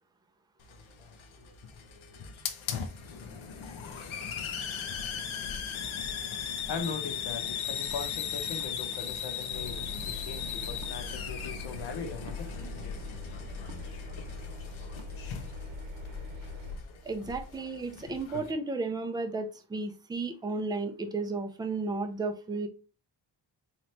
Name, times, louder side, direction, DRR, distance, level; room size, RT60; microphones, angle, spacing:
Hiss, 0.6-18.5, left 8 dB, 85° left, 0.7 m, -38 dB
voice 1, 3.0-14.3, left 5 dB, 60° left, 0.9 m, -41 dB
sound 1, 6.9-7.0 8.6-8.9 10.8-11.0 12.3-12.5 13.7-14.0 15.0-15.1, right 7 dB, 50° right, 0.6 m, -52 dB
Engine, 9.5-16.8, left 3 dB, 75° right, 0.9 m, -41 dB
voice 2, 17.0-22.7, right 3 dB, 10° right, 0.3 m, -33 dB
4.0 x 2.9 x 3.2 m
wide cardioid pair, 160°, 46 cm